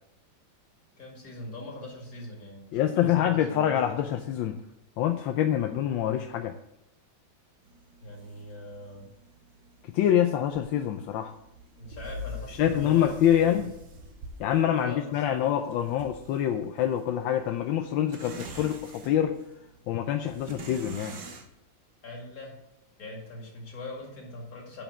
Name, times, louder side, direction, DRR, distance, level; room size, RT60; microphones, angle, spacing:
voice 1, 1.0-3.8 8.0-9.1 11.8-13.6 14.8-15.6 22.0-22.6 23.0-24.8, left 2 dB, 50° left, -1 dB, 2.7 m, -41 dB
voice 2, 2.7-4.6 5.0-6.6 9.9-11.3 12.5-13.7 14.4-19.4 19.9-21.1, left 10 dB, 85° left, 6 dB, 1.3 m, -26 dB
sound 1, 7.6-21.5, equal, 80° right, 1.8 m, -46 dB
8.7 x 5.3 x 7.0 m, 0.83 s
omnidirectional pair, 2.1 m